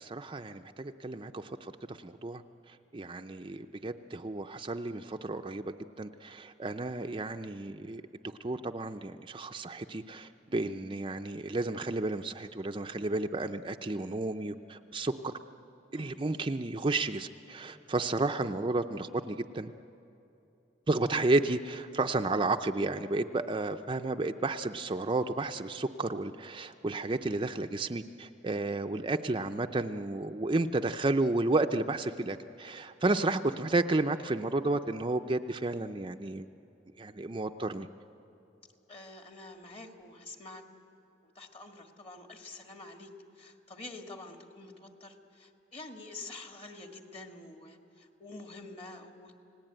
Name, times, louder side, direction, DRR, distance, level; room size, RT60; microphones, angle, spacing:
voice 1, 0.0-2.4 2.7-8.0 8.4-15.3 15.9-19.7 20.9-36.5 37.0-37.9, right 2 dB, 30° right, 6 dB, 0.6 m, -32 dB
voice 2, 38.9-40.6 41.4-49.3, left 2 dB, 35° left, 4 dB, 1.9 m, -47 dB
29.0 x 18.5 x 9.0 m, 2.9 s
head